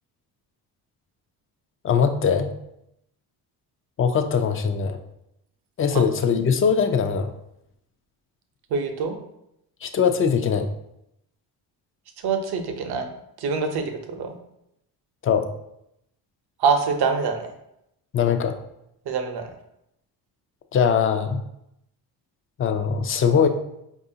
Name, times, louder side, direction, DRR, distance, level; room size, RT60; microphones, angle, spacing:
voice 1, 1.8-2.5 4.0-5.0 5.8-7.3 9.8-10.7 15.2-15.5 18.1-18.5 20.7-21.4 22.6-23.5, left 6 dB, 30° left, 7 dB, 0.4 m, -21 dB
voice 2, 8.7-9.2 12.2-13.1 13.4-14.4 16.6-17.5 19.1-19.5, right 5 dB, 55° right, 6 dB, 0.7 m, -25 dB
4.7 x 2.5 x 2.7 m, 0.80 s
supercardioid pair, 75°, 46 cm